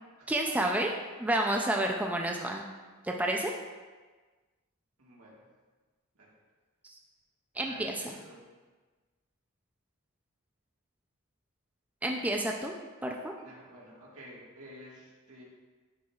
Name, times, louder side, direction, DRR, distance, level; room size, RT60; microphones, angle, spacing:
voice 1, 0.3-0.9 1.2-2.7 3.0-3.5 6.8-6.9 7.6-8.1 12.0-12.7 13.0-13.3, right 1 dB, 5° right, 1 dB, 0.3 m, -30 dB
voice 2, 5.0-5.3 6.2-6.3 7.6-8.4 13.4-15.4, equal, 75° right, -5 dB, 1.7 m, -50 dB
10.0 x 4.6 x 2.4 m, 1.3 s
head